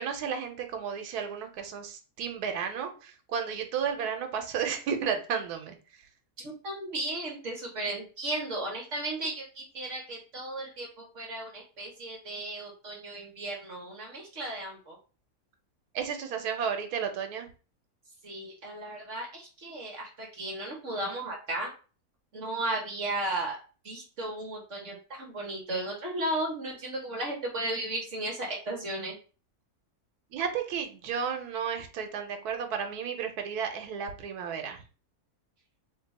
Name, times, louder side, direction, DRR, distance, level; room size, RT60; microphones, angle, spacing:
voice 1, 0.0-5.8 15.9-17.5 30.3-34.8, right 7 dB, 90° right, 6 dB, 1.2 m, -33 dB
voice 2, 6.4-15.0 18.2-21.7 22.3-23.6 23.8-29.1, right 1 dB, 55° right, -1 dB, 1.1 m, -35 dB
3.1 x 2.2 x 4.0 m, 0.36 s
omnidirectional pair, 1.6 m